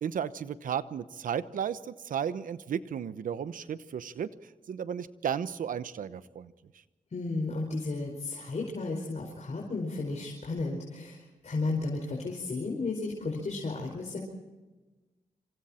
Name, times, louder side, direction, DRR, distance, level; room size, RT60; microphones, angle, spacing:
voice 1, 0.0-4.3 4.7-6.5, right 8 dB, 90° right, 14 dB, 0.9 m, -34 dB
voice 2, 7.1-14.2, left 3 dB, 60° left, -1 dB, 5.0 m, -33 dB
27.0 x 26.5 x 4.4 m, 1.2 s
cardioid pair, 55°, 13 cm